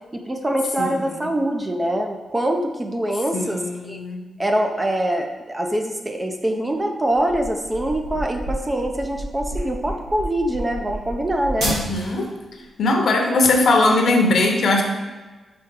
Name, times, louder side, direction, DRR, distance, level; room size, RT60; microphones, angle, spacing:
voice 1, 0.1-4.0 4.4-11.7, right 1 dB, 15° right, 4 dB, 0.6 m, -24 dB
voice 2, 0.8-1.3 3.3-4.2 11.6-12.4 12.8-14.8, left 2 dB, 65° left, 2 dB, 0.9 m, -20 dB
sound 1, 7.1-12.3, right 1 dB, 85° right, 2.0 m, -30 dB
6.2 x 3.6 x 4.7 m, 1.3 s
wide cardioid pair, 125°, 0 cm